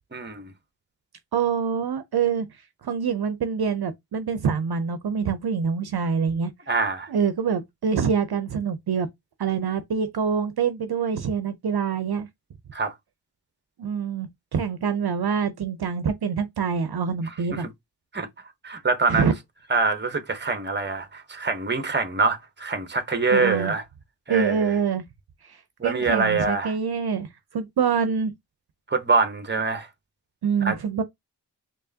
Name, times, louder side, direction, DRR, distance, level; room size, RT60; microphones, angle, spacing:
voice 1, 0.1-0.5 6.7-7.1 12.7-12.9 17.5-17.7 18.1-18.3 18.6-19.3 19.7-23.8 24.3-24.7 25.8-26.7 28.9-29.9 30.6-30.8, right 4 dB, 25° right, 0.9 m, -24 dB
voice 2, 1.3-2.5 2.8-6.5 7.1-9.1 9.4-12.3 13.8-17.7 19.1-19.3 23.3-23.7 24.3-25.0 25.4-28.3 30.4-31.0, right 6 dB, 60° right, 0.6 m, -25 dB
4.5 x 3.0 x 2.7 m
wide cardioid pair, 90°, 42 cm